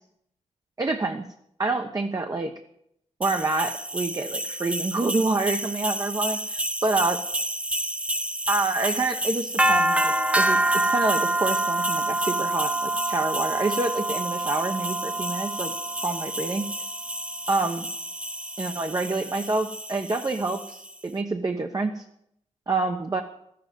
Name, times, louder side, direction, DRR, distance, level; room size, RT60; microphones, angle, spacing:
voice 1, 0.8-1.2 1.6-2.5 3.2-7.2 8.5-10.6 10.9-15.7 16.0-16.6 17.5-17.9 18.6-22.0 22.7-23.2, right 3 dB, 30° right, 4 dB, 1.0 m, -27 dB
sound 1, 3.2-20.9, right 1 dB, 10° right, 0.6 m, -27 dB
13.5 x 7.8 x 9.2 m, 0.74 s
wide cardioid pair, 105°, 12 cm